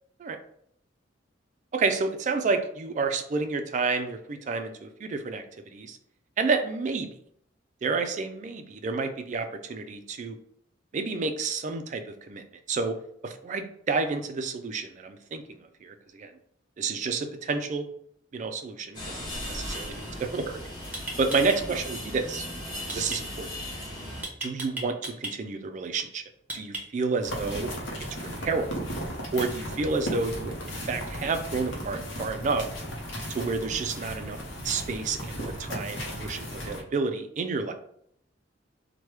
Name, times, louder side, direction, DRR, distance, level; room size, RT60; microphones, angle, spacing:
voice 1, 1.7-6.0 6.4-7.1 7.8-10.4 10.9-13.0 13.2-16.3 16.8-17.9 18.3-20.6 21.2-22.4 22.9-23.5 24.4-26.2 26.5-27.7 28.4-28.7 29.3-32.7 33.3-34.4 34.6-37.7, right 4 dB, 40° right, 8 dB, 0.3 m, -30 dB
sound 1, 18.9-24.2, left 1 dB, 20° left, 0.9 m, -37 dB
sound 2, 20.9-21.6 22.9-23.2 24.2-25.3 26.5-27.1, right 2 dB, 10° right, 0.7 m, -35 dB
sound 3, 27.2-36.8, equal, 70° left, 0.8 m, -36 dB
3.0 x 2.2 x 3.1 m, 0.69 s
head